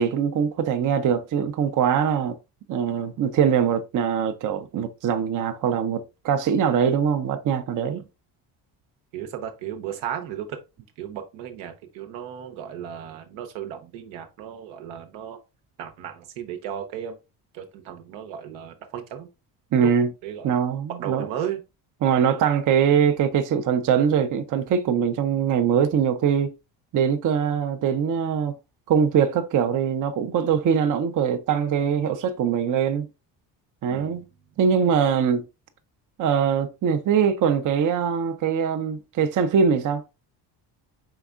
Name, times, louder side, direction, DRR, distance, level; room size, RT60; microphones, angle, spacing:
voice 1, 0.0-2.4 2.7-8.0 19.7-20.1 20.4-21.3 22.0-26.6 26.9-28.6 28.9-33.1 33.8-34.2 34.6-35.4 36.2-40.2, right 7 dB, 45° right, 0.6 m, -22 dB
voice 2, 9.1-10.6 11.0-15.4 15.8-17.2 17.5-19.3 19.8-19.9 20.2-20.5 21.0-21.6 33.9-34.2, right 9 dB, 80° right, 0.9 m, -35 dB
4.7 x 3.5 x 2.4 m
supercardioid pair, 75°, 47 cm